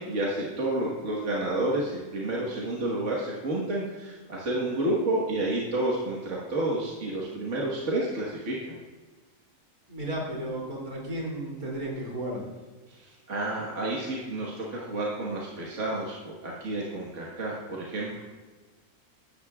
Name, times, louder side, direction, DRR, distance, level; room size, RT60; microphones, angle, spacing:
voice 1, 0.0-8.8 12.9-18.2, right 1 dB, 50° right, -4 dB, 1.8 m, -30 dB
voice 2, 9.9-12.4, right 1 dB, 65° right, -2 dB, 3.4 m, -33 dB
16.0 x 12.0 x 2.4 m, 1.3 s
omnidirectional pair, 1.6 m